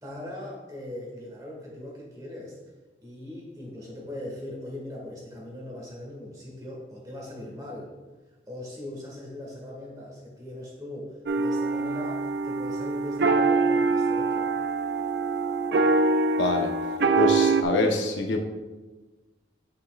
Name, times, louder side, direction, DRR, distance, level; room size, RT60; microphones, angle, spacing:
voice 1, 0.0-2.6 3.0-7.9 8.5-14.5, left 1 dB, 20° right, -3 dB, 1.5 m, -40 dB
sound 1, 11.3-17.6, right 3 dB, 65° right, 0.4 m, -24 dB
voice 2, 16.4-16.7 17.2-18.4, left 3 dB, 85° left, 3 dB, 0.8 m, -25 dB
8.5 x 5.4 x 2.4 m, 1.2 s
head